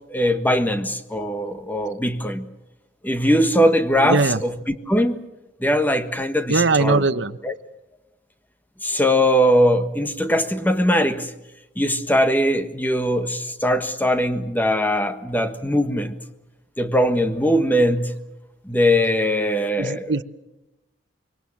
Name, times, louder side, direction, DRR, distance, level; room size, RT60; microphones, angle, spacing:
voice 1, 0.1-2.5 3.0-5.2 5.6-7.0 7.4-7.5 8.8-11.3 11.8-16.2 16.8-18.1 18.7-20.2, equal, 10° left, 1.4 m, -21 dB
voice 2, 4.0-4.4 6.5-7.4 19.8-20.2, right 3 dB, 80° right, 1.0 m, -20 dB
25.5 x 23.0 x 7.3 m
head